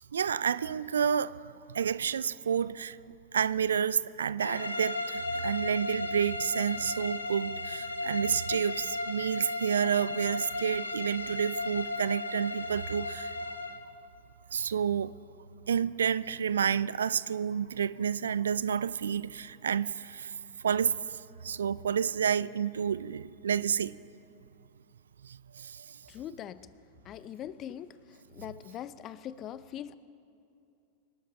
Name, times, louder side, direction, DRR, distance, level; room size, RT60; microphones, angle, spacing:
voice 1, 0.0-1.4 1.7-3.0 3.3-13.3 14.5-15.1 15.7-20.4 20.6-21.0 21.4-23.9 25.2-25.8, right 7 dB, 65° right, 0.3 m, -30 dB
sound 1, 4.4-13.9, left 2 dB, 80° left, 0.9 m, -35 dB
voice 2, 26.1-26.7 27.0-30.0, left 10 dB, 30° left, 0.5 m, -42 dB
25.0 x 12.5 x 4.0 m
figure-of-eight pair, 90°, 0 cm